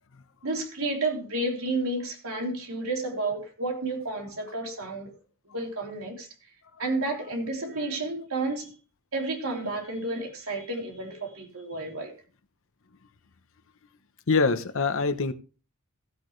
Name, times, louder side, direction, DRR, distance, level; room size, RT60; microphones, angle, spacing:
voice 1, 0.4-5.1 5.4-6.3 6.8-8.7 9.1-12.1, right 2 dB, 80° right, 3.3 m, -31 dB
voice 2, 14.3-15.3, left 4 dB, 65° left, 1.0 m, -24 dB
16.0 x 8.1 x 3.3 m
head